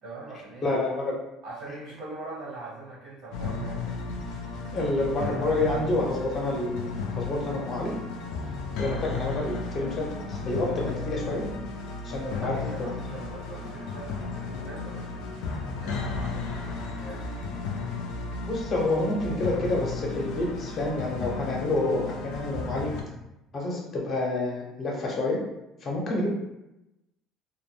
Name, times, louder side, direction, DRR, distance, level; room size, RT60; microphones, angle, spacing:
voice 1, 0.0-0.7 1.4-4.0 12.1-15.2 15.7-17.3, right 2 dB, 75° right, -5 dB, 1.1 m, -42 dB
voice 2, 0.6-1.2 4.7-6.9 7.1-7.9 8.8-11.4 12.1-12.6 13.1-13.2 18.4-22.9 23.5-25.4 25.8-26.3, left 2 dB, 40° left, -2 dB, 0.7 m, -28 dB
sound 1, 3.3-23.0, left 4 dB, 80° left, 0.4 m, -34 dB
2.2 x 2.1 x 3.1 m, 0.90 s
cardioid pair, 110°, 0 cm